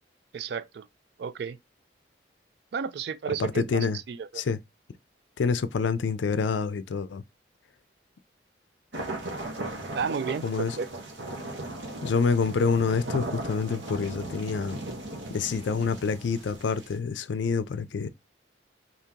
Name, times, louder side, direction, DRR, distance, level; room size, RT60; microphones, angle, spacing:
voice 1, 0.3-0.9 1.2-1.6 2.7-4.3 9.9-10.5 10.8-10.9, right 6 dB, 60° right, 0.3 m, -32 dB
voice 2, 3.4-4.0 4.3-4.6 5.4-7.2 10.4-10.8 12.0-14.8 15.3-18.1, left 5 dB, 80° left, 0.4 m, -27 dB
sound 1, 8.9-16.9, right 2 dB, 80° right, 1.0 m, -37 dB
2.8 x 2.8 x 3.6 m
head